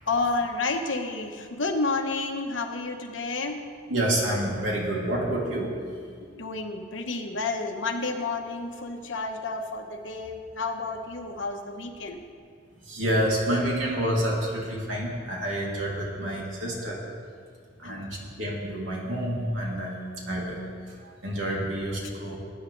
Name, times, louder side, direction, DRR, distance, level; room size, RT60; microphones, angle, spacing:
voice 1, 0.1-3.6 6.3-12.2 17.8-18.1, left 3 dB, 70° left, 3 dB, 1.2 m, -30 dB
voice 2, 3.9-5.7 12.9-17.0 17.8-18.1 18.4-20.0 20.3-20.6 21.2-22.4, right 1 dB, 85° right, -4 dB, 2.9 m, -28 dB
19.5 x 9.7 x 3.3 m, 2.1 s
head